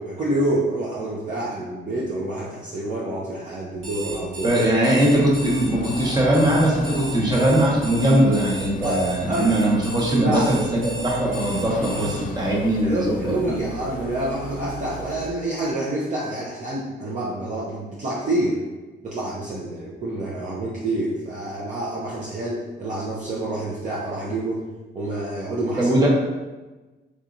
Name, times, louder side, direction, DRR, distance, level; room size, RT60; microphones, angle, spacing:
voice 1, 0.0-4.5 5.1-5.2 8.8-9.0 9.3-9.6 10.2-10.5 11.9-12.0 12.8-18.6 19.0-24.6 24.9-25.9, right 1 dB, 40° right, -6 dB, 0.7 m, -27 dB
Alarm, 3.7-12.2, right 2 dB, 85° right, 1.2 m, -36 dB
voice 2, 4.4-13.6 25.8-26.1, right 1 dB, 20° right, -4 dB, 1.1 m, -20 dB
sound 1, 5.1-15.3, equal, 45° left, 0.5 m, -36 dB
4.7 x 2.7 x 2.5 m, 1.2 s
cardioid pair, 90°, 20 cm